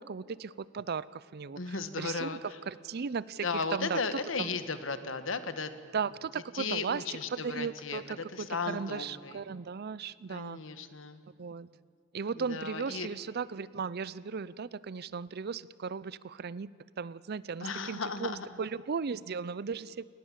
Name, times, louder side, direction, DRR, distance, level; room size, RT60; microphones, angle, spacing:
voice 1, 0.0-2.3 2.7-4.5 5.9-7.0 7.3-10.6 11.4-11.7 12.1-16.7 17.0-20.1, right 5 dB, 50° right, 20 dB, 0.5 m, -36 dB
voice 2, 1.6-2.4 3.4-5.7 6.5-9.4 10.3-11.2 12.4-13.1 17.6-18.5, left 4 dB, 70° left, 11 dB, 1.4 m, -35 dB
28.5 x 19.0 x 7.4 m, 2.5 s
head